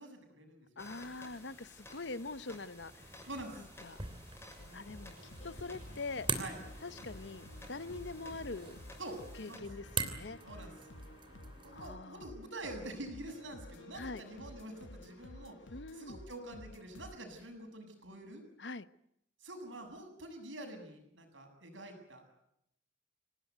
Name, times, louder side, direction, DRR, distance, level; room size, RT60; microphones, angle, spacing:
voice 1, 0.0-0.7 3.3-3.7 6.3-6.6 9.0-9.2 9.5-9.7 10.4-10.7 11.6-15.6 15.9-18.4 19.4-22.2, right 1 dB, 80° right, 5 dB, 7.8 m, -46 dB
voice 2, 0.8-2.9 3.6-4.0 4.7-5.1 5.4-6.3 6.8-8.8 9.4-10.4 11.7-12.3 13.9-14.2 15.7-16.2 18.6-18.9, left 3 dB, 65° left, 15 dB, 0.9 m, -43 dB
sound 1, 0.8-9.6, left 1 dB, 15° left, 6.6 m, -55 dB
sound 2, 2.8-12.0, right 5 dB, 25° right, 3.1 m, -44 dB
sound 3, 4.6-17.2, left 1 dB, 80° left, 1.7 m, -52 dB
26.5 x 18.5 x 9.5 m, 0.77 s
head